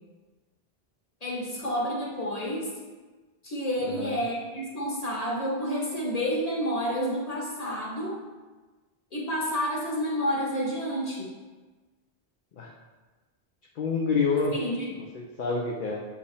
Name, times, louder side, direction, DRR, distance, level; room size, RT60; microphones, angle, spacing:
voice 1, 1.2-2.7 3.4-8.2 9.1-11.3 14.5-14.9, equal, 40° left, -3 dB, 1.6 m, -29 dB
voice 2, 3.8-4.2 12.6-12.7 13.8-14.6 15.1-16.0, left 4 dB, 55° left, -1 dB, 0.8 m, -27 dB
8.2 x 4.8 x 3.4 m, 1.3 s
omnidirectional pair, 1.0 m